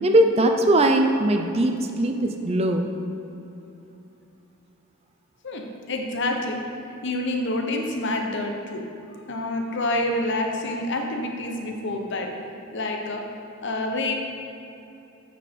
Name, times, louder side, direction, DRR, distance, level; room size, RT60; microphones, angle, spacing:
voice 1, 0.0-2.9, right 1 dB, 30° right, 4 dB, 0.4 m, -20 dB
voice 2, 5.4-6.6 7.0-8.9 9.3-12.3 12.7-13.2 13.6-14.1, left 2 dB, 55° left, 3 dB, 0.8 m, -27 dB
8.3 x 4.3 x 5.2 m, 2.8 s
head